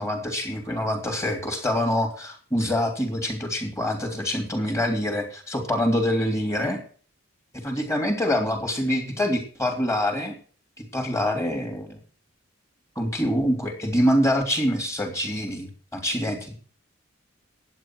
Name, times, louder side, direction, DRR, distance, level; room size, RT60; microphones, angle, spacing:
voice 1, 0.0-6.8 7.6-10.3 10.9-12.0 12.9-16.6, equal, 15° left, 4 dB, 3.1 m, -25 dB
11.5 x 9.0 x 6.1 m, 0.42 s
head